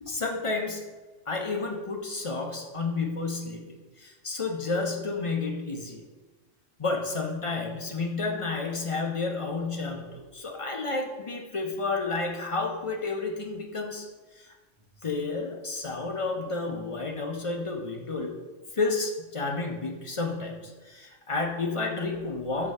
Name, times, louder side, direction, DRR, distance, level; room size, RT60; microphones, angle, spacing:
voice 1, 0.0-0.8 1.3-6.0 6.8-14.1 14.4-14.5 15.0-18.4 18.7-22.7, left 3 dB, 45° left, 1 dB, 0.4 m, -31 dB
5.8 x 3.2 x 5.3 m, 1.3 s
omnidirectional pair, 1.4 m